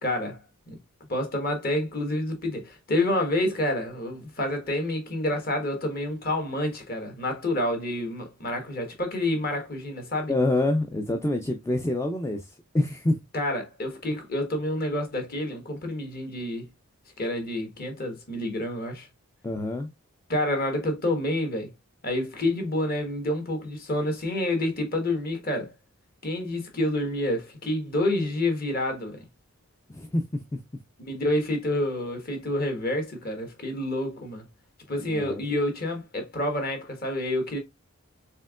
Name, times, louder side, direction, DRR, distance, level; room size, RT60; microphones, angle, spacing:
voice 1, 0.0-0.8 1.1-10.3 13.3-16.7 17.2-19.1 20.3-21.7 22.0-25.7 26.2-29.3 31.0-34.4 34.9-37.6, left 1 dB, 45° left, 1.2 m, -28 dB
voice 2, 10.3-13.2 19.4-19.9 29.9-30.6 35.0-35.4, left 1 dB, 15° left, 0.3 m, -27 dB
4.4 x 3.6 x 2.3 m
head